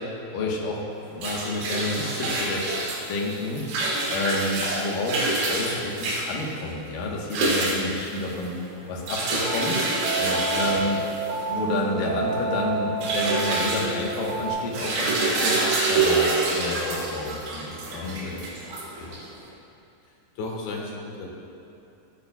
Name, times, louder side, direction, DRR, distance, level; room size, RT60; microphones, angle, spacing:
voice 1, 0.3-3.6 4.1-8.6 8.9-9.8 10.5-11.0 11.5-18.3 19.0-19.3, left 2 dB, 65° left, -2 dB, 2.4 m, -30 dB
sound 1, 0.9-19.4, right 2 dB, 70° right, 3.6 m, -27 dB
sound 2, 9.4-14.5, right 3 dB, 90° right, 1.4 m, -29 dB
voice 2, 10.2-10.5 18.0-18.5 20.1-21.3, left 3 dB, 80° left, -1 dB, 3.7 m, -34 dB
15.0 x 9.8 x 2.3 m, 2.8 s
omnidirectional pair, 5.1 m